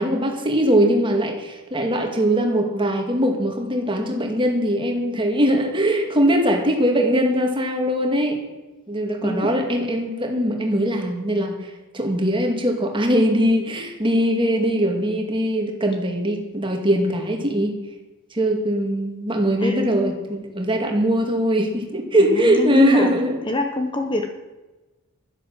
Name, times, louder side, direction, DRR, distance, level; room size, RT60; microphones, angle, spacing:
voice 1, 0.0-8.4 8.9-11.6 11.9-17.8 18.3-23.4, equal, 25° right, 2 dB, 2.2 m, -21 dB
voice 2, 19.6-20.1 22.2-23.1 23.5-24.3, left 2 dB, 20° left, 5 dB, 1.0 m, -25 dB
11.0 x 11.0 x 7.3 m, 1.1 s
head